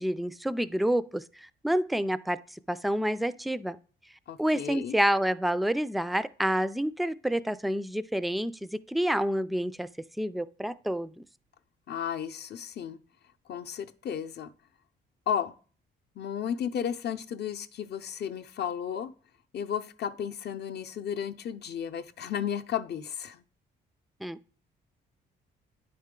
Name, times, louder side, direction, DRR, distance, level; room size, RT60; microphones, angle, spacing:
voice 1, 0.0-3.8 4.4-9.9 10.2-11.2 24.2-24.4, equal, ahead, 0.3 m, -28 dB
voice 2, 4.3-5.0 11.9-13.0 13.5-14.5 15.3-15.5 16.2-19.1 19.5-23.4, left 8 dB, 55° left, 0.6 m, -33 dB
9.5 x 4.2 x 3.7 m
cardioid pair, 90°, 20 cm